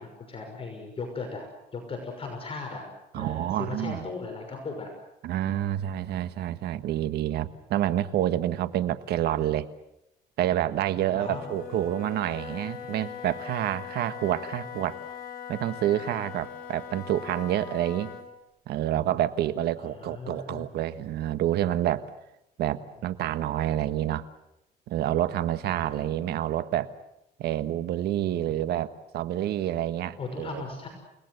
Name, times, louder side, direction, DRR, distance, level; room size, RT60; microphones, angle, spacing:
voice 1, 0.0-1.5 1.7-2.8 3.2-4.9 11.1-11.5 19.8-20.6 25.8-26.3 30.2-30.9, left 4 dB, 35° left, 3 dB, 6.0 m, -37 dB
voice 2, 3.1-4.0 5.2-9.7 10.4-15.0 15.5-18.1 18.7-22.0 22.6-24.3 24.9-26.9 27.4-30.7, right 12 dB, 70° right, 12 dB, 1.5 m, -28 dB
Wind instrument woodwind instrument, 11.1-18.3, left 8 dB, 60° left, 4.4 m, -41 dB
29.5 x 19.5 x 8.0 m, 0.85 s
cardioid pair, 110°, 17 cm